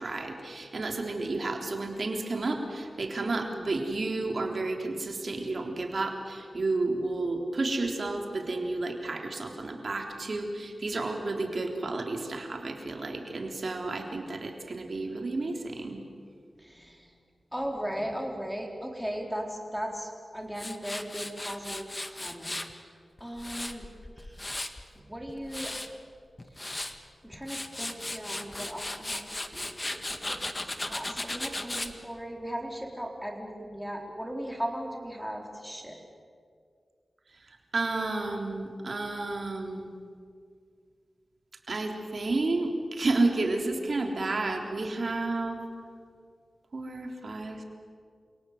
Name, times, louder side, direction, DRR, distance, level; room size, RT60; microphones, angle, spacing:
voice 1, 0.0-16.0 37.5-39.9 41.7-45.6 46.7-47.6, right 2 dB, 60° right, 3 dB, 3.6 m, -31 dB
voice 2, 16.6-17.1 17.5-22.9 23.2-23.9 24.2-24.3 25.1-26.0 27.2-30.0 30.3-36.0, equal, ahead, 1 dB, 4.6 m, -37 dB
Tools, 20.6-22.7 23.2-24.8 25.3-25.9 26.4-26.9 27.3-31.9, left 1 dB, 30° left, 1.8 m, -36 dB
28.5 x 18.0 x 8.0 m, 2.2 s
cardioid pair, 45°, 0 cm